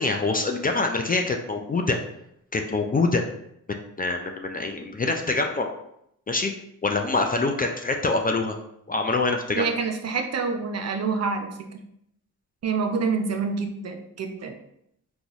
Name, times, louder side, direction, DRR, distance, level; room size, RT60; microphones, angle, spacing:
voice 1, 0.0-2.0 2.5-3.2 3.7-5.7 6.3-6.5 6.8-8.5 8.9-9.7, left 3 dB, 25° left, 3 dB, 0.4 m, -25 dB
voice 2, 9.6-11.7 12.6-14.5, right 5 dB, 45° right, 5 dB, 0.5 m, -27 dB
3.9 x 2.3 x 2.9 m, 0.75 s
supercardioid pair, 50°, 37 cm